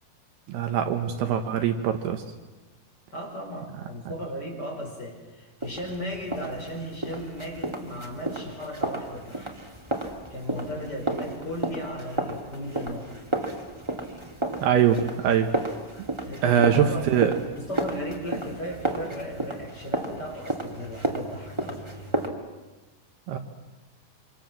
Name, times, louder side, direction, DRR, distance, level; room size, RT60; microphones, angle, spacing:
voice 1, 0.5-2.2 14.6-15.5 16.4-17.4 23.3-23.4, right 9 dB, 70° right, 7 dB, 3.2 m, -23 dB
voice 2, 3.1-9.6 10.3-13.3 16.3-17.2 17.5-22.1, equal, 25° left, 1 dB, 5.3 m, -36 dB
sound 1, 5.6-22.3, right 1 dB, 15° right, 1.1 m, -33 dB
27.5 x 26.5 x 7.6 m, 1.2 s
omnidirectional pair, 5.0 m